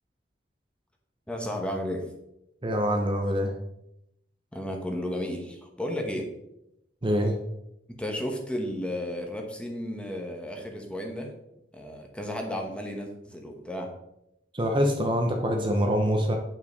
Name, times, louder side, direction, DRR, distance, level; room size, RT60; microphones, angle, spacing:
voice 1, 1.3-2.0 4.5-6.3 7.9-11.3 11.7-13.9, left 1 dB, 5° left, 1 dB, 1.2 m, -33 dB
voice 2, 2.6-3.5 7.0-7.3 14.5-16.4, equal, 25° right, 3 dB, 0.8 m, -25 dB
8.9 x 5.7 x 4.0 m, 0.83 s
head